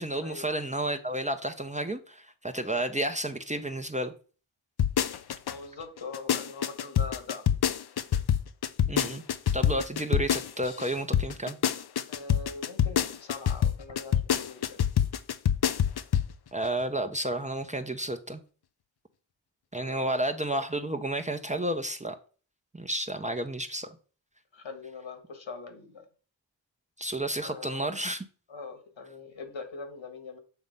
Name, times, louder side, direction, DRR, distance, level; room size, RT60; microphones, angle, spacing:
voice 1, 0.0-4.1 8.9-9.2 9.5-11.6 16.5-18.4 19.7-22.2 22.7-23.9 27.0-28.3, right 1 dB, 15° right, 5 dB, 0.7 m, -31 dB
sound 1, 4.8-5.5 6.0-10.9 11.1-16.3 16.6-16.7, left 9 dB, 55° left, 0.6 m, -26 dB
voice 2, 5.4-7.4 12.1-14.8 19.7-20.2 23.2-23.3 24.5-26.1 27.4-28.0 28.5-30.4, left 4 dB, 75° left, 6 dB, 1.6 m, -42 dB
7.1 x 3.1 x 5.3 m, 0.39 s
cardioid pair, 40°, 46 cm